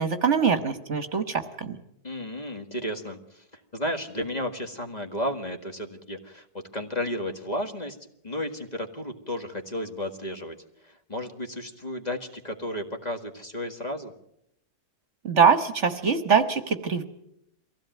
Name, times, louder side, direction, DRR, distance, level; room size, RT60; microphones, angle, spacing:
voice 1, 0.0-1.8 15.2-17.0, right 6 dB, 50° right, 10 dB, 1.4 m, -23 dB
voice 2, 2.0-3.4 3.7-8.0 8.2-10.6 10.8-14.1, left 1 dB, 25° left, 4 dB, 1.8 m, -33 dB
23.5 x 16.0 x 9.2 m, 0.78 s
omnidirectional pair, 1.7 m